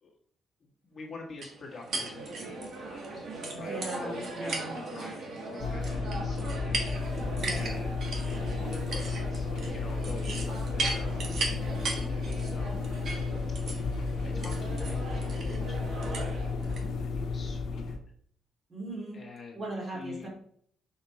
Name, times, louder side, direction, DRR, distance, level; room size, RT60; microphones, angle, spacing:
voice 1, 0.6-3.3 3.5-12.9 14.2-17.9 19.1-20.3, left 4 dB, 30° left, -2 dB, 1.4 m, -47 dB
sound 1, 1.4-16.8, right 2 dB, 55° right, 1.6 m, -37 dB
voice 2, 3.5-4.7 7.3-7.8 18.7-19.2 19.5-20.3, right 2 dB, 30° right, -2 dB, 2.9 m, -39 dB
sound 2, 5.6-18.0, left 4 dB, 60° left, 0.8 m, -33 dB
6.0 x 5.1 x 4.2 m, 0.64 s
cardioid pair, 150°, 0 cm